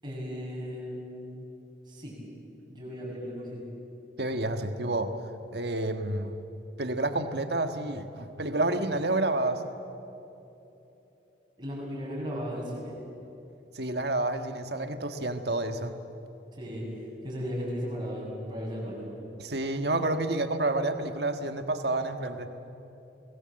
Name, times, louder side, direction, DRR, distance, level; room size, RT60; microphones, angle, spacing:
voice 1, 0.0-1.4 1.9-2.1 2.7-3.6 11.6-12.9 16.5-16.8 17.2-19.1, equal, 25° right, -4 dB, 7.4 m, -36 dB
voice 2, 4.2-5.1 5.5-6.3 6.8-9.6 13.7-16.0 19.4-22.5, right 2 dB, 65° right, 7 dB, 1.6 m, -29 dB
28.5 x 20.0 x 7.8 m, 3.0 s
head